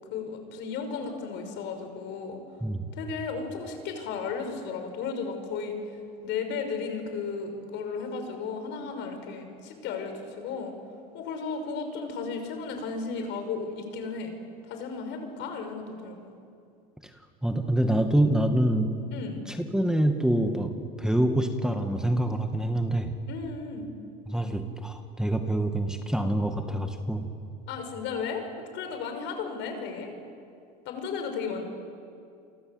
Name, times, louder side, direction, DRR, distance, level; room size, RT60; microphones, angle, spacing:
voice 1, 0.1-2.4 2.9-5.8 6.2-10.7 11.1-14.3 14.6-16.3 19.1-19.5 23.3-23.9 27.7-30.1 30.8-31.6, left 5 dB, 60° left, 6 dB, 5.9 m, -34 dB
voice 2, 17.4-18.9 19.5-20.7 21.0-23.2 24.3-27.3, right 1 dB, 5° right, 5 dB, 2.1 m, -26 dB
29.0 x 24.5 x 8.0 m, 2.5 s
supercardioid pair, 95°, 21 cm